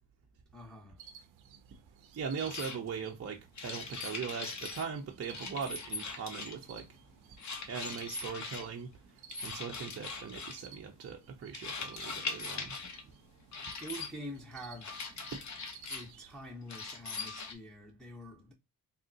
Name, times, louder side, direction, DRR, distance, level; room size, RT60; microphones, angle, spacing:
voice 1, 0.5-1.0 13.8-15.0 15.9-18.5, equal, ahead, 0.8 m, -46 dB
sound 1, 1.0-16.4, right 7 dB, 70° right, 0.7 m, -56 dB
voice 2, 2.1-6.9 7.7-12.7, right 6 dB, 30° right, 0.6 m, -40 dB
sound 2, 2.4-2.8 3.6-4.9 5.3-6.7 7.4-8.7 9.3-10.6 11.5-13.0 13.5-14.1 14.8-16.1 16.7-17.5, left 4 dB, 35° left, 0.8 m, -41 dB
3.6 x 2.1 x 2.7 m
supercardioid pair, 60°, 49 cm